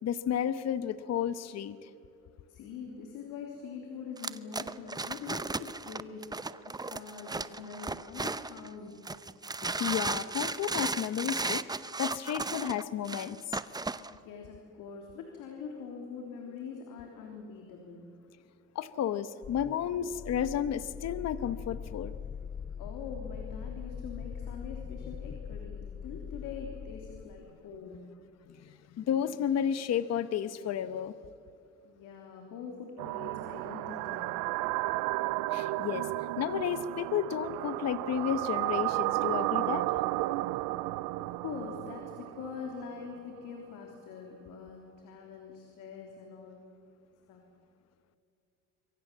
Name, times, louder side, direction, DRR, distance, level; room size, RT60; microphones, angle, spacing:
voice 1, 0.0-1.9 9.6-13.5 18.7-22.1 28.5-31.1 35.5-36.1 36.4-39.9, left 9 dB, 55° left, 13 dB, 1.0 m, -32 dB
voice 2, 2.5-9.0 14.1-18.1 22.8-28.0 31.8-34.4 41.2-46.7 47.3-47.4, left 5 dB, 80° left, 2 dB, 3.3 m, -44 dB
sound 1, 4.2-8.7 9.1-14.1, right 3 dB, 10° right, 0.7 m, -35 dB
sound 2, 19.4-27.6, left 7 dB, 25° left, 0.7 m, -42 dB
sound 3, 33.0-43.1, right 18 dB, 90° right, 0.6 m, -33 dB
26.0 x 23.0 x 7.5 m, 2.6 s
cardioid pair, 95°, 31 cm